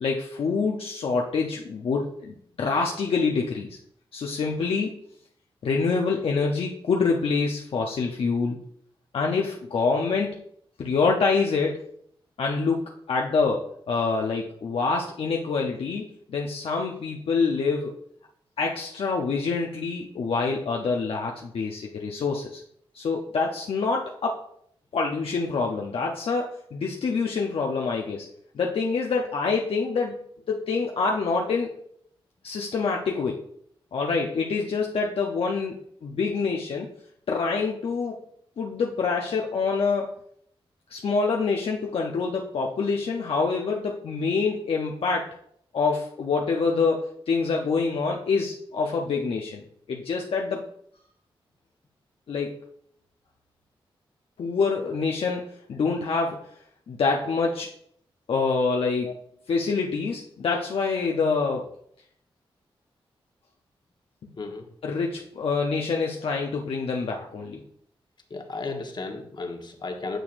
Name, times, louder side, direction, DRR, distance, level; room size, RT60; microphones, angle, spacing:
voice 1, 0.0-3.8 4.1-4.9 5.6-8.6 9.1-10.4 10.8-11.8 12.4-17.9 18.6-22.6 22.9-24.4 24.9-28.3 28.5-30.2 30.5-31.7 32.4-33.4 33.9-36.9 37.3-38.2 38.6-40.1 40.9-45.3 45.7-49.6 49.9-50.6 52.3-52.6 54.4-55.4 55.7-56.4 56.9-57.7 58.3-59.1 59.5-61.7 64.8-67.6, left 4 dB, 75° left, 0 dB, 0.8 m, -26 dB
voice 2, 68.3-70.2, left 3 dB, 50° left, 3 dB, 1.3 m, -34 dB
9.0 x 6.3 x 2.6 m, 0.66 s
cardioid pair, 60°, 10 cm